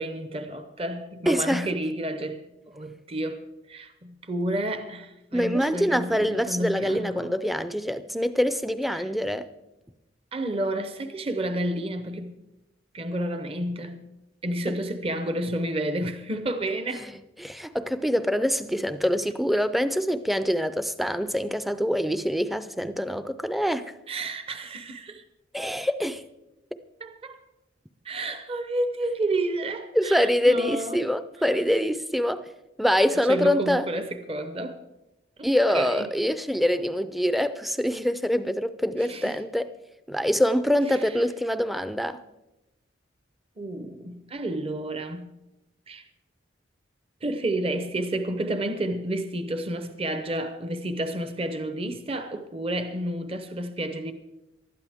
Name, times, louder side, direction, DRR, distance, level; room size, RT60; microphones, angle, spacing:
voice 1, 0.0-2.4 2.7-3.4 3.7-7.4 8.9-9.0 10.3-12.4 12.9-14.0 14.4-17.1 24.1-25.2 27.0-27.4 28.0-31.0 33.1-34.8 35.4-36.1 39.0-39.4 40.9-41.2 43.6-45.3 45.9-46.1 47.2-54.1, right 1 dB, 30° right, 0.7 m, -30 dB
voice 2, 1.3-1.7 5.3-9.5 14.7-14.8 17.0-17.1 17.4-23.9 25.5-26.2 29.9-32.5 32.8-33.9 35.4-39.7 40.1-42.2, equal, ahead, 0.4 m, -25 dB
19.5 x 12.5 x 3.5 m
head